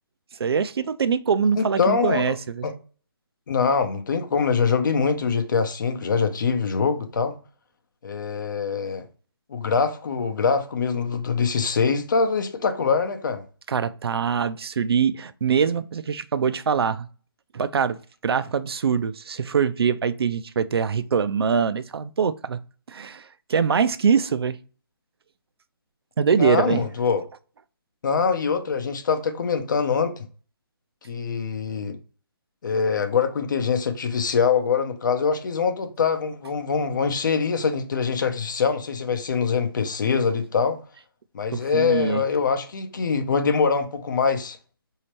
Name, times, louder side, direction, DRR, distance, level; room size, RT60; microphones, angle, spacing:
voice 1, 0.4-2.6 13.7-17.1 17.5-22.6 22.9-24.6 26.2-26.8 41.5-42.2, right 6 dB, 85° right, 0.4 m, -23 dB
voice 2, 1.6-2.2 2.6-2.7 3.5-7.3 8.0-9.0 9.5-13.4 26.4-27.2 28.0-30.3 31.0-32.0 32.6-40.8 41.3-44.6, left 5 dB, 55° left, 0.7 m, -23 dB
4.1 x 2.8 x 3.0 m
hypercardioid pair, 165°, 13 cm